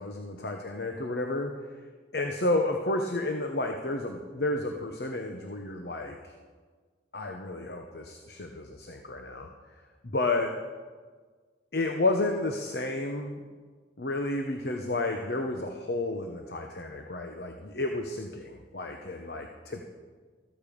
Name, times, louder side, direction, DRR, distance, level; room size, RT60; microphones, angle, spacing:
voice 1, 0.0-1.5 2.1-6.2 7.1-9.5 10.0-10.5 11.7-13.4 14.0-19.8, left 2 dB, 60° left, 4 dB, 1.0 m, -31 dB
14.5 x 13.5 x 5.3 m, 1.5 s
head